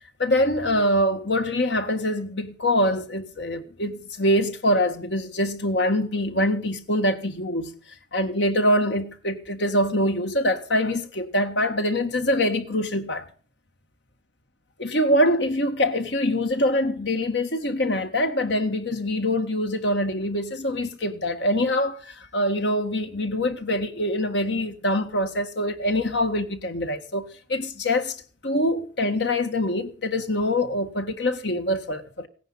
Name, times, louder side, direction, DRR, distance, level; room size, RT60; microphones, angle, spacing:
voice 1, 0.2-7.7 8.1-13.3 14.8-28.2 28.4-32.3, left 1 dB, 70° left, 1.8 m, -24 dB
17.0 x 10.5 x 5.7 m
head